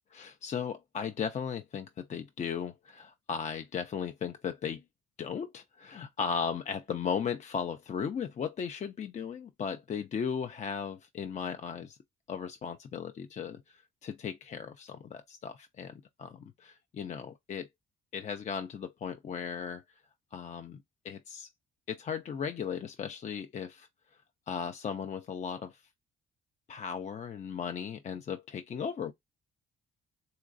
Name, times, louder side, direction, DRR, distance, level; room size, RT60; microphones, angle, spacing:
voice 1, 0.1-4.8 5.2-12.0 12.3-17.7 18.1-19.8 20.3-21.5 21.9-23.9 24.5-25.8 26.7-29.1, left 7 dB, 35° left, 0.4 m, -36 dB
4.0 x 2.3 x 2.5 m
cardioid pair, 90°, 20 cm